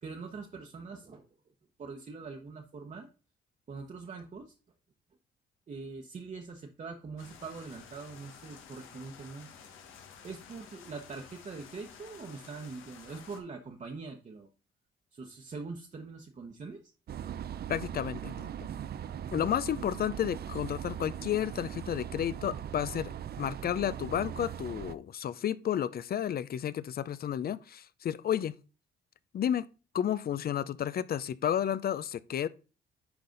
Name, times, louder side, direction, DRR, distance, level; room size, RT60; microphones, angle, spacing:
voice 1, 0.0-1.3 1.8-3.1 3.7-4.5 5.7-9.5 10.2-14.5 15.1-16.9, right 4 dB, 35° right, 1.1 m, -43 dB
sound 1, 7.2-13.4, left 7 dB, 85° left, 1.5 m, -52 dB
sound 2, 17.1-25.0, right 9 dB, 55° right, 0.6 m, -40 dB
voice 2, 17.7-18.5 19.3-23.1 23.4-28.6 29.3-29.7 29.9-32.5, left 10 dB, 50° left, 0.5 m, -32 dB
10.5 x 4.1 x 3.9 m
cardioid pair, 90°, 20 cm